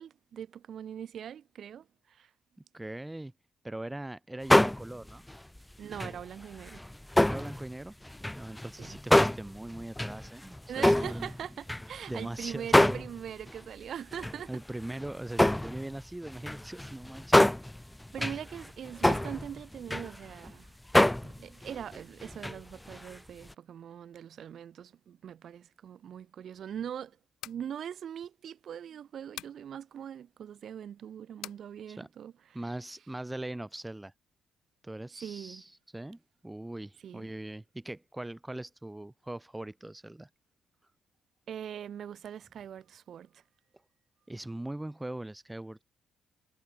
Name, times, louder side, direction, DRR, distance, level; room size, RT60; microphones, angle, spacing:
voice 1, 0.0-2.3 5.8-6.8 8.8-9.0 10.7-14.5 18.1-20.8 21.2-27.2 27.4-32.3 35.2-35.6 37.0-37.3 41.5-43.4, right 9 dB, 60° right, 7.7 m, -42 dB
voice 2, 2.7-3.3 3.6-5.3 7.2-8.0 8.4-11.3 12.1-13.1 14.5-17.4 18.3-18.4 31.9-32.1 32.5-34.1 34.8-40.3 44.3-45.8, right 1 dB, 10° right, 7.1 m, -41 dB
sound 1, 4.5-5.6 5.9-7.7 8.1-12.3 12.7-13.6 14.1-20.5 20.9-22.6 22.9-23.2 23.5-23.6, left 1 dB, 5° left, 0.9 m, -26 dB
sound 2, 27.2-27.7 29.4-29.6 31.4-31.6, left 14 dB, 85° left, 6.1 m, -43 dB
cardioid pair, 90°, 0 cm